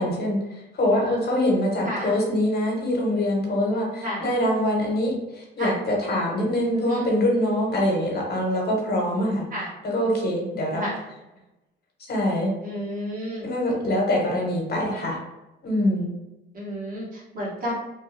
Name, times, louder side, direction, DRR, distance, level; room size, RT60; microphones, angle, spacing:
voice 1, 0.0-9.5 9.8-10.8 12.1-12.5 13.4-15.2 15.6-16.1, left 1 dB, 55° left, -1 dB, 1.1 m, -24 dB
voice 2, 12.6-13.5 16.5-17.7, equal, 45° right, -6 dB, 1.4 m, -31 dB
3.1 x 2.2 x 3.2 m, 1.0 s
cardioid pair, 90°, 20 cm